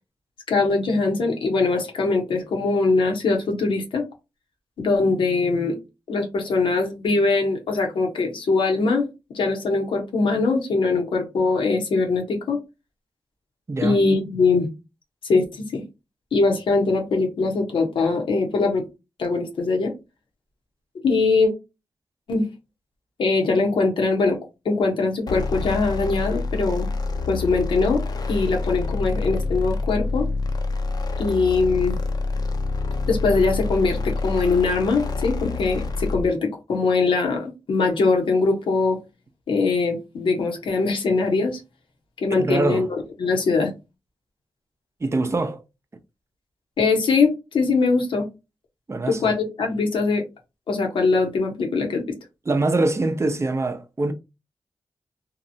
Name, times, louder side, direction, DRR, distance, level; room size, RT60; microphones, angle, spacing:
voice 1, 0.5-4.0 4.8-5.8 6.1-9.1 9.3-12.6 13.8-14.7 15.2-15.8 16.3-18.8 19.2-19.9 21.0-21.5 22.3-22.5 23.2-24.4 24.6-26.9 27.3-28.0 28.3-30.3 31.2-32.0 33.1-39.0 39.5-41.6 42.2-43.7 46.8-48.3 49.1-50.2 50.7-52.0, left 3 dB, 85° left, 0.8 m, -22 dB
voice 2, 13.7-14.0 42.3-42.9 45.0-45.6 48.9-49.3 52.5-54.1, right 2 dB, 35° right, 0.5 m, -24 dB
sound 1, 25.3-36.3, left 3 dB, 50° left, 0.5 m, -27 dB
2.8 x 2.1 x 2.6 m
cardioid pair, 55°, 9 cm